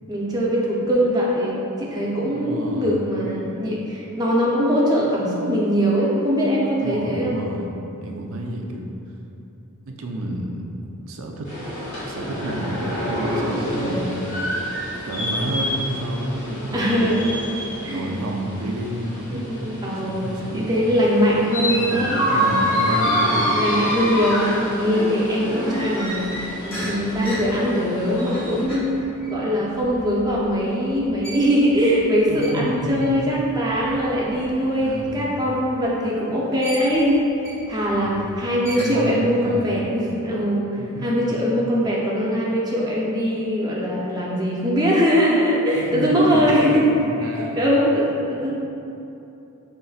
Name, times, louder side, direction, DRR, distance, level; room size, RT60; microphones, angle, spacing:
voice 1, 0.1-7.4 16.7-17.3 17.8-18.1 19.3-20.3 20.5-22.2 22.9-29.0 29.3-46.9 47.6-48.5, equal, 20° right, -5 dB, 0.6 m, -22 dB
voice 2, 2.3-3.1 6.8-8.9 9.9-10.7 11.1-11.5 12.1-14.4 15.0-17.2 17.8-20.8 21.6-23.6 32.3-33.3 34.8-35.3 37.9-38.3 38.8-39.8 40.8-41.4 45.7-47.7 48.0-48.5, right 1 dB, 65° right, 1 dB, 0.5 m, -30 dB
sound 1, 11.5-28.7, equal, 65° left, 1.3 m, -27 dB
sound 2, 26.0-36.1 36.6-39.1, equal, 25° left, 1.4 m, -39 dB
5.3 x 3.6 x 2.4 m, 2.9 s
head